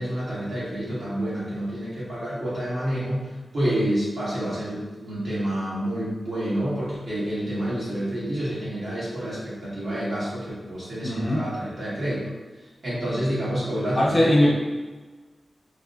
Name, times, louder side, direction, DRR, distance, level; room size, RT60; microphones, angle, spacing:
voice 1, 0.0-12.2 12.8-14.5, right 1 dB, 60° right, -9 dB, 1.4 m, -28 dB
voice 2, 11.0-11.4 14.0-14.5, left 1 dB, 20° left, -5 dB, 0.6 m, -20 dB
4.3 x 2.0 x 2.4 m, 1.3 s
wide cardioid pair, 125°, 0 cm